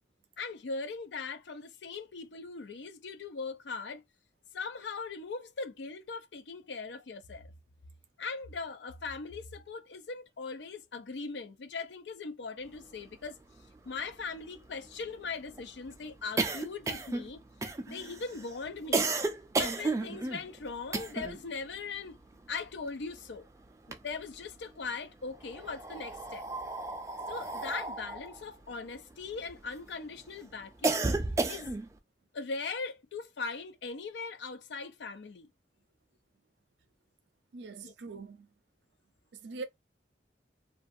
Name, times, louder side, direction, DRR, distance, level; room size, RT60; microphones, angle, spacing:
voice 1, 0.4-4.0 4.5-7.5 8.2-13.4 13.8-17.4 17.9-19.1 19.6-22.2 22.5-23.5 23.9-26.5 27.3-31.1 31.4-31.7 32.3-35.5 37.8-37.9, left 4 dB, 80° left, 0.5 m, -40 dB
sound 1, 13.2-13.3 13.6-13.7 14.0-21.5 21.7-23.3 23.7-24.6 25.3-29.8 30.2-32.0, right 3 dB, 15° right, 0.3 m, -33 dB
voice 2, 37.5-38.5 39.3-39.6, right 4 dB, 80° right, 0.5 m, -42 dB
2.3 x 2.3 x 2.5 m
head